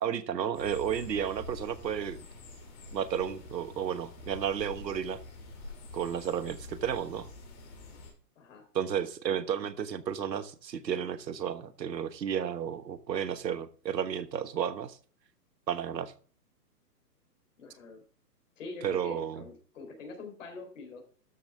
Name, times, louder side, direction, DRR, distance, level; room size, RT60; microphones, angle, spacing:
voice 1, 0.0-2.3 2.9-5.2 5.9-7.3 8.7-15.0 15.7-16.1 18.8-19.4, right 8 dB, 90° right, 12 dB, 1.3 m, -32 dB
sound 1, 0.5-8.1, left 2 dB, 25° left, 2.8 m, -46 dB
voice 2, 8.4-8.7 17.6-18.0 18.6-21.0, left 3 dB, 50° left, 3 dB, 3.9 m, -44 dB
13.0 x 7.1 x 3.5 m, 0.43 s
hypercardioid pair, 170°, 49 cm